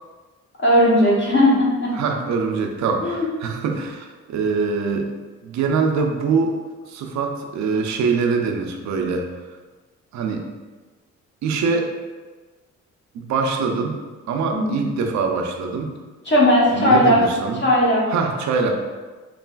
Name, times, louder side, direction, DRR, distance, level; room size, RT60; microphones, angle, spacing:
voice 1, 0.6-1.9 3.0-3.2 14.5-14.8 16.3-17.2 17.6-18.0, left 1 dB, 40° left, -5 dB, 0.9 m, -17 dB
voice 2, 1.9-5.1 5.4-6.6 6.8-9.3 10.1-10.4 11.4-11.9 13.1-14.0 14.3-15.9 16.7-17.6 18.1-18.8, right 4 dB, 65° right, 4 dB, 0.5 m, -23 dB
3.2 x 2.4 x 2.3 m, 1.3 s
cardioid pair, 90°, 30 cm